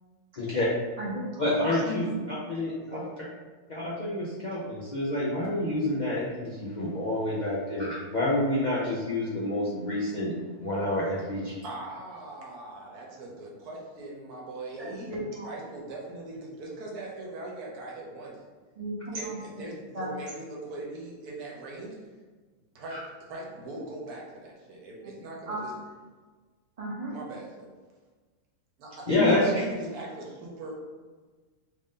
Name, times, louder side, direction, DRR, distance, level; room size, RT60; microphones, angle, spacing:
voice 1, 0.4-0.7 1.4-3.2 3.7-11.5 29.1-29.6, left 1 dB, 65° left, -7 dB, 0.4 m, -28 dB
voice 2, 1.0-1.4 1.8-2.1 2.9-3.0 14.8-15.5 18.8-19.4 19.9-20.1 25.5-25.6 26.8-27.2 29.1-29.6, equal, 30° right, -5 dB, 0.7 m, -34 dB
voice 3, 11.5-15.1 15.4-18.4 19.1-22.0 22.7-25.7 27.1-27.7 28.8-30.8, right 2 dB, 75° right, -2 dB, 1.3 m, -41 dB
3.3 x 2.5 x 3.6 m, 1.4 s
omnidirectional pair, 1.7 m